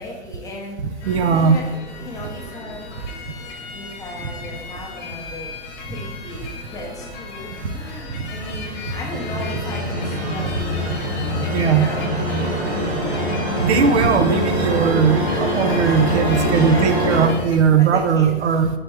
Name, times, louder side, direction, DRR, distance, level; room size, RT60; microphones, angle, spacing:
voice 1, 0.0-1.7 2.0-2.9 3.7-5.5 5.9-10.9 11.4-12.9 15.3-17.4 17.8-18.3, left 2 dB, 10° left, -1 dB, 0.6 m, -35 dB
sound 1, 1.0-17.6, left 4 dB, 40° left, 1.0 m, -37 dB
voice 2, 1.1-1.6 11.5-11.9 13.6-18.7, right 6 dB, 85° right, 8 dB, 0.6 m, -18 dB
sound 2, 7.6-17.3, equal, 30° right, 1.1 m, -24 dB
4.3 x 3.3 x 3.3 m, 1.1 s
hypercardioid pair, 125°, 33 cm